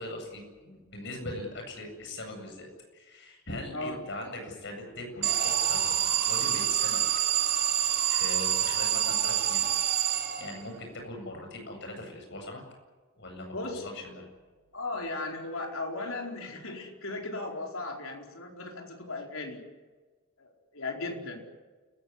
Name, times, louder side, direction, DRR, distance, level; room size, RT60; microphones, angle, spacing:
voice 1, 0.0-2.7 2.9-7.0 8.0-9.6 10.4-12.6 13.2-14.2, left 1 dB, 55° left, 3 dB, 8.0 m, -40 dB
Alarm, 5.2-10.8, right 10 dB, 45° right, 3.5 m, -27 dB
voice 2, 13.5-13.9 14.7-19.6 20.4-21.5, left 2 dB, 80° left, 2 dB, 4.6 m, -36 dB
29.5 x 15.5 x 9.9 m, 1.3 s
head